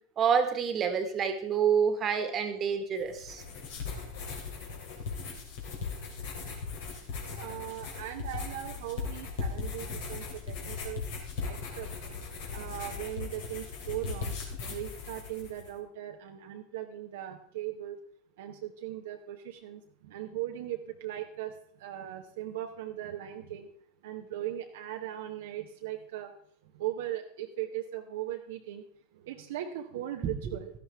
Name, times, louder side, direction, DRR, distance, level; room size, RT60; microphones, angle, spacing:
voice 1, 0.2-3.4, right 7 dB, 35° right, 8 dB, 1.7 m, -27 dB
sound 1, 3.0-15.7, left 4 dB, 65° left, 3.0 m, -38 dB
voice 2, 7.3-11.0 11.4-12.3 12.5-18.0 18.4-23.7 24.0-26.3 26.6-28.8 29.1-30.8, right 12 dB, 65° right, 3 dB, 1.0 m, -39 dB
12.5 x 11.0 x 3.5 m, 0.62 s
hypercardioid pair, 90°, 0 cm